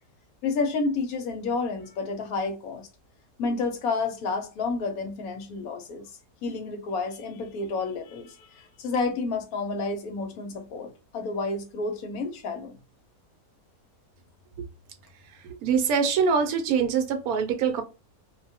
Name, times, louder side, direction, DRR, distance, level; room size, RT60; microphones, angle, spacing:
voice 1, 0.4-2.9 3.4-6.1 6.4-12.8, left 3 dB, 70° left, 1.0 m, -30 dB
voice 2, 15.6-17.8, right 6 dB, 70° right, 1.0 m, -24 dB
2.6 x 2.2 x 2.7 m
omnidirectional pair, 1.7 m